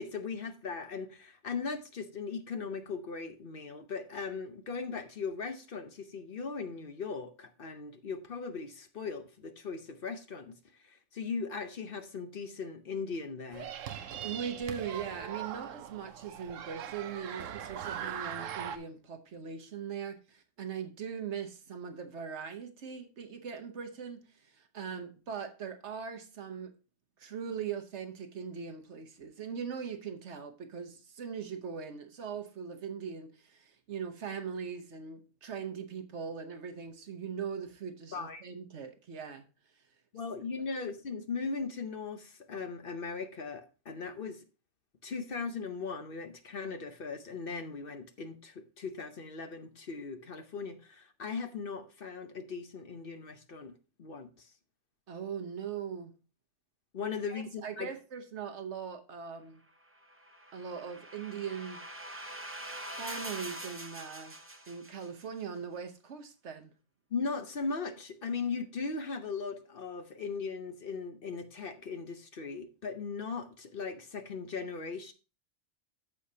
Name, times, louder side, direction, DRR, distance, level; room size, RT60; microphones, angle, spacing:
voice 1, 0.0-13.7 38.1-38.4 40.1-44.4 45.0-54.5 56.9-57.9 67.1-75.1, left 4 dB, 50° left, 0.9 m, -38 dB
sound 1, 13.5-18.8, right 9 dB, 85° right, 1.0 m, -40 dB
voice 2, 14.2-26.7 27.2-39.4 55.1-56.1 57.3-59.6 60.5-61.8 63.0-64.4 64.7-66.7, right 7 dB, 65° right, 1.3 m, -40 dB
sound 2, 60.0-65.2, right 1 dB, 15° right, 0.6 m, -44 dB
14.0 x 4.9 x 2.7 m
omnidirectional pair, 1.3 m